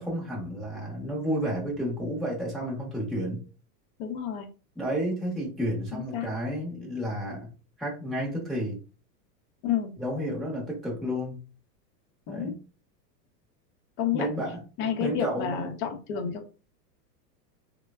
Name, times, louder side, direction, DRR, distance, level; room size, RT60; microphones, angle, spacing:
voice 1, 0.0-3.4 4.8-7.5 7.8-8.8 10.0-11.4 12.3-12.6 14.1-14.6 15.0-15.7, equal, ahead, -5 dB, 0.8 m, -31 dB
voice 2, 4.0-4.5 5.9-6.3 9.6-9.9 12.3-12.5 14.0-14.3 14.8-16.5, left 8 dB, 45° left, 3 dB, 0.7 m, -30 dB
3.2 x 2.1 x 2.2 m, 0.35 s
supercardioid pair, 135°, 48 cm